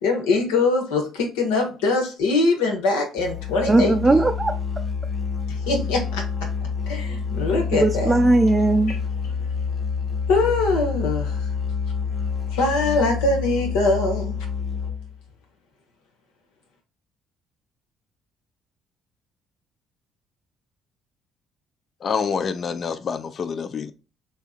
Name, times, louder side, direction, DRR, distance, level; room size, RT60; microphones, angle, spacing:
voice 1, 0.0-4.2 5.7-6.2 6.9-8.2 8.9-9.0 10.3-11.4 12.5-14.3, left 3 dB, 75° left, 1.0 m, -22 dB
Musical instrument, 3.2-15.2, left 6 dB, 30° left, 0.9 m, -28 dB
voice 2, 3.7-4.5 7.7-9.0, right 2 dB, 20° right, 0.4 m, -18 dB
voice 3, 22.0-23.9, left 6 dB, 50° left, 0.4 m, -27 dB
3.4 x 2.8 x 2.4 m
hypercardioid pair, 50°, 0 cm